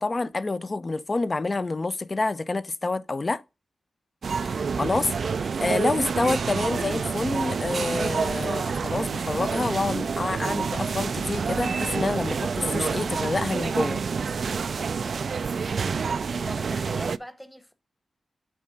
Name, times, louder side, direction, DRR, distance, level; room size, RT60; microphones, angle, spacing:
voice 1, 0.0-3.4 4.4-14.0, left 3 dB, 35° left, 0.5 m, -28 dB
sound 1, 4.2-17.2, right 5 dB, 65° right, 0.3 m, -28 dB
voice 2, 15.4-15.9 16.3-17.7, equal, 5° left, 1.0 m, -43 dB
8.6 x 3.3 x 5.1 m
wide cardioid pair, 85°, 0 cm